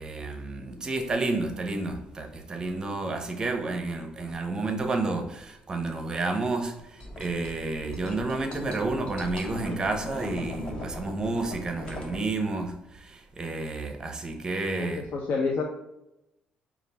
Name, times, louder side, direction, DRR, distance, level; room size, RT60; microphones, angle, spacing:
voice 1, 0.0-15.0, right 3 dB, 25° right, 0.6 m, -30 dB
sound 1, 7.0-12.2, left 1 dB, 30° left, 0.8 m, -39 dB
voice 2, 14.7-15.6, left 4 dB, 65° left, 0.5 m, -29 dB
5.2 x 2.4 x 3.3 m
cardioid pair, 125°, 3 cm